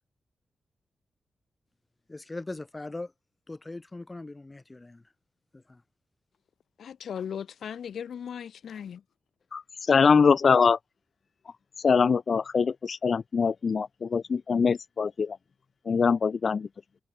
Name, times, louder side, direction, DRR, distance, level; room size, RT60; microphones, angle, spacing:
voice 1, 2.1-3.1 3.5-5.1 5.5-5.8, left 2 dB, 25° left, 2.7 m, -40 dB
voice 2, 6.8-9.0, left 8 dB, 85° left, 1.1 m, -37 dB
voice 3, 9.9-10.8 11.8-15.4 15.9-16.7, left 5 dB, 60° left, 0.6 m, -23 dB
cardioid pair, 65°, 0 cm